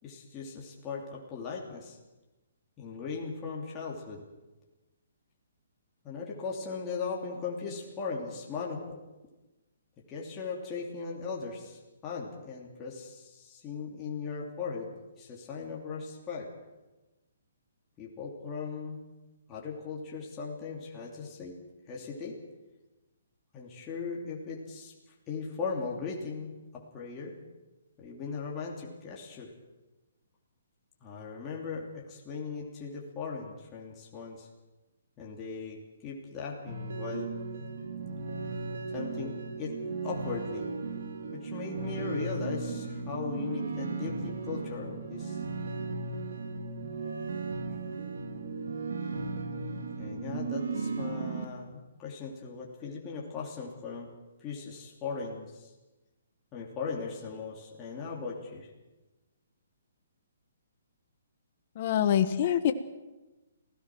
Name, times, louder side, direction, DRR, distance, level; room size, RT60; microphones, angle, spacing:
voice 1, 0.0-2.0 2.8-4.2 6.0-9.0 10.1-16.5 18.0-19.0 19.5-21.6 21.9-22.4 23.5-24.9 25.3-27.4 28.0-29.5 31.0-34.5 35.2-37.3 38.9-39.7 40.0-40.7 41.3-45.4 50.0-54.1 54.4-55.7 56.5-58.7, left 5 dB, 15° left, -3 dB, 2.9 m, -38 dB
sound 1, 36.7-51.5, right 4 dB, 75° right, 2.7 m, -36 dB
voice 2, 61.7-62.7, left 10 dB, 35° left, 7 dB, 1.3 m, -25 dB
26.5 x 16.5 x 6.2 m, 1.1 s
hypercardioid pair, 165°, 0 cm